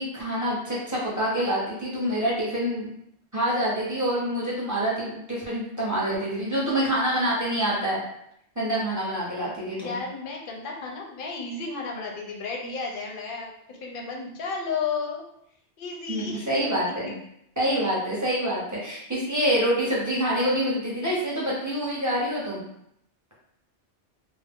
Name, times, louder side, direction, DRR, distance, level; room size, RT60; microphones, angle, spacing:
voice 1, 0.0-2.9 3.3-8.0 8.6-10.0 16.1-17.1 17.6-22.7, equal, 20° right, -7 dB, 0.7 m, -26 dB
voice 2, 9.7-15.2 15.8-16.5, left 4 dB, 60° left, 0 dB, 0.7 m, -33 dB
2.4 x 2.0 x 3.4 m, 0.75 s
omnidirectional pair, 1.2 m